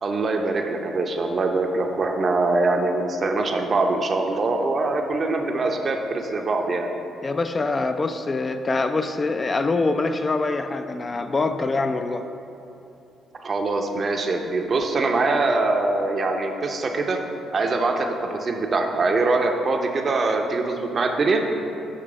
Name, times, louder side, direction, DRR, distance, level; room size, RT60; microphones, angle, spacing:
voice 1, 0.0-6.9 13.4-17.2 17.5-21.4, right 3 dB, 45° right, 4 dB, 0.6 m, -23 dB
voice 2, 7.2-12.2, left 3 dB, 35° left, 8 dB, 0.3 m, -24 dB
6.6 x 3.3 x 4.8 m, 2.9 s
supercardioid pair, 60°, 0 cm